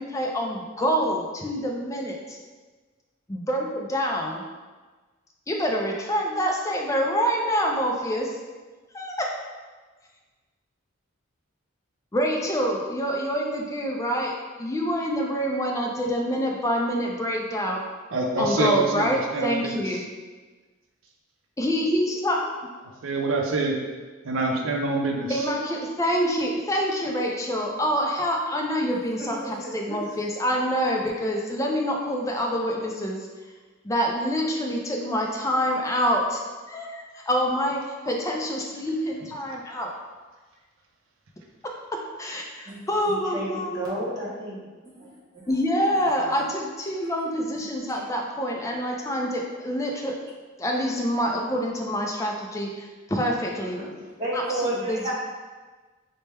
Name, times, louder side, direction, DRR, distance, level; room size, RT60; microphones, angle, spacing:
voice 1, 0.0-2.4 3.3-4.4 5.5-8.4 8.9-9.3 12.1-17.9 18.4-20.0 21.6-22.4 25.3-33.3 33.8-36.4 36.7-39.9 42.2-43.9 45.5-50.2 50.6-53.8 54.3-55.1, equal, 15° left, 0 dB, 0.4 m, -26 dB
voice 2, 18.1-19.8 23.0-23.8 24.2-25.4, right 3 dB, 70° right, 1 dB, 0.5 m, -25 dB
voice 3, 29.2-30.0 42.6-44.6 44.9-45.1 53.7-53.8 54.2-55.1, right 1 dB, 20° right, -9 dB, 1.2 m, -32 dB
4.3 x 2.1 x 3.3 m, 1.3 s
head